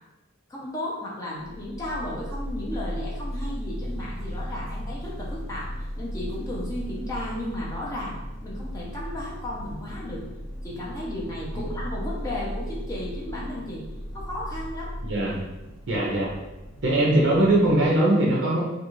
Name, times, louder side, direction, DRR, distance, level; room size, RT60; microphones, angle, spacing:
voice 1, 0.5-8.1 8.4-10.2 10.6-13.8 14.1-14.9, left 1 dB, 15° left, -5 dB, 0.6 m, -34 dB
sound 1, 1.4-18.0, equal, 70° left, 1.2 m, -36 dB
voice 2, 15.0-15.5 15.9-16.3 16.8-18.6, right 1 dB, 55° right, -3 dB, 0.6 m, -21 dB
2.5 x 2.3 x 3.0 m, 1.0 s
head